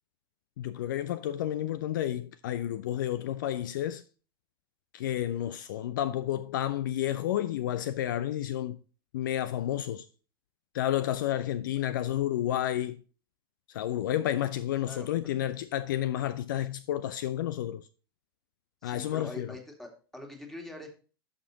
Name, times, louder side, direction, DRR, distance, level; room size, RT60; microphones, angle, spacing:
voice 1, 0.6-4.0 4.9-8.8 9.1-10.1 10.7-13.0 13.7-17.9 18.8-19.5, left 12 dB, 55° left, 0.4 m, -31 dB
voice 2, 18.8-20.9, left 1 dB, ahead, 2.1 m, -44 dB
11.0 x 6.6 x 2.8 m
figure-of-eight pair, 85°, 13 cm